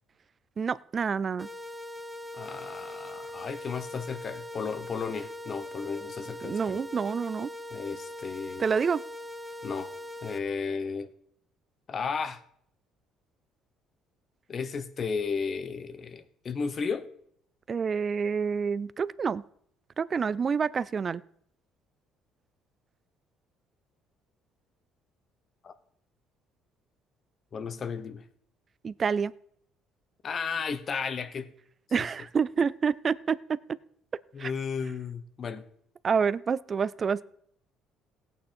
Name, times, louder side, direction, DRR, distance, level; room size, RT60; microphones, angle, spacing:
voice 1, 0.6-1.5 6.4-7.5 8.6-9.0 17.7-19.4 20.0-21.2 28.8-29.3 31.9-33.4 34.4-34.5 36.0-37.2, right 6 dB, 30° right, 20 dB, 0.4 m, -28 dB
sound 1, 1.4-10.4, left 1 dB, 5° right, 1.1 m, -41 dB
voice 2, 2.3-6.8 7.7-8.7 9.6-9.9 10.2-11.1 11.9-12.4 14.5-17.1 25.6-25.7 27.5-28.3 30.2-31.5 34.3-35.7, left 5 dB, 35° left, 12 dB, 1.0 m, -34 dB
17.0 x 8.8 x 4.4 m, 0.67 s
cardioid pair, 130°, 0 cm